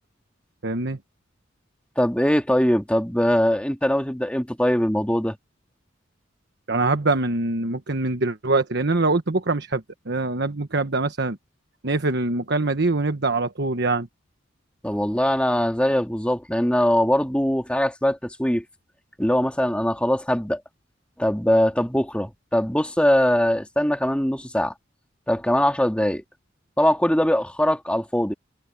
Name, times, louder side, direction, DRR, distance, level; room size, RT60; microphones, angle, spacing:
voice 1, 0.6-1.0 6.7-11.4 11.8-14.1, right 3 dB, 60° right, 1.2 m, -24 dB
voice 2, 2.0-5.4 14.8-18.6 19.2-20.6 21.2-24.7 25.3-26.2 26.8-28.3, equal, 5° left, 2.4 m, -21 dB
head